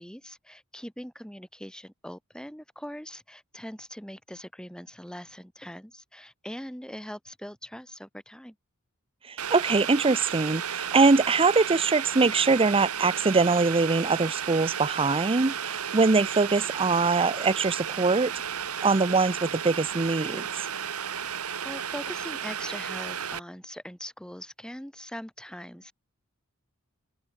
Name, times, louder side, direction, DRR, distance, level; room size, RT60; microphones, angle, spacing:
voice 1, 0.0-8.5 21.6-25.9, equal, 5° left, 5.5 m, -41 dB
voice 2, 9.3-18.3 18.8-20.7, right 4 dB, 25° right, 0.6 m, -23 dB
Boiling, 9.4-23.4, right 8 dB, 80° right, 1.7 m, -33 dB
head